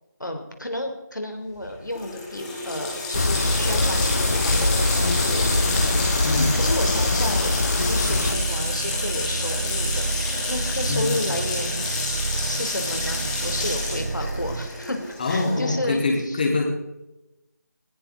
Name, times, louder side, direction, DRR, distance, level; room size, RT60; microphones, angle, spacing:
voice 1, 0.2-5.6 6.5-11.8 12.5-16.4, left 1 dB, 90° left, 4 dB, 3.5 m, -32 dB
Water tap faucet, 1.6-1.7 1.9-15.7, left 3 dB, 10° left, 2.9 m, -29 dB
sound 1, 3.1-8.4, left 2 dB, 55° left, 1.8 m, -23 dB
voice 2, 6.2-6.6 10.9-11.1 15.2-16.6, left 3 dB, 30° left, -1 dB, 4.0 m, -24 dB
sound 2, 8.1-14.7, right 3 dB, 15° right, 0.4 m, -30 dB
20.0 x 17.0 x 4.0 m, 0.95 s
figure-of-eight pair, 165°, 10 cm